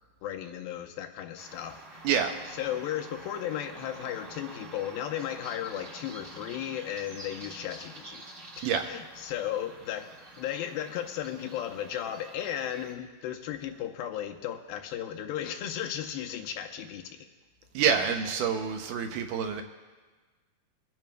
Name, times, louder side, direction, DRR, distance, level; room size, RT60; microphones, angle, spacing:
voice 1, 0.2-2.1 2.5-8.2 8.6-10.1 10.4-17.2, left 10 dB, 85° left, 4 dB, 2.5 m, -35 dB
sound 1, 1.4-12.9, right 2 dB, 35° right, 1.2 m, -48 dB
voice 2, 17.7-19.6, right 7 dB, 75° right, 5 dB, 2.0 m, -27 dB
25.5 x 10.5 x 2.2 m, 1.3 s
omnidirectional pair, 4.2 m